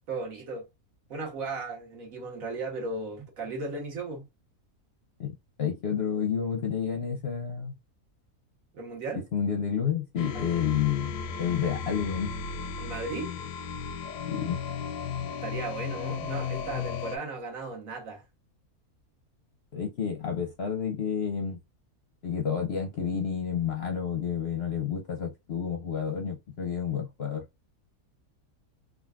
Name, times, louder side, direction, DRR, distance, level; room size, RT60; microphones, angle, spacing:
voice 1, 0.1-0.6 1.1-4.2 8.7-9.3 10.3-10.4 12.8-13.3 15.4-18.2, right 3 dB, 65° right, 1.5 m, -36 dB
voice 2, 5.6-7.7 9.3-12.3 14.3-14.6 19.7-21.6 22.2-27.4, left 7 dB, 55° left, 0.7 m, -30 dB
sound 1, 10.2-17.2, left 6 dB, 85° left, 1.1 m, -35 dB
3.8 x 2.4 x 2.3 m
omnidirectional pair, 1.6 m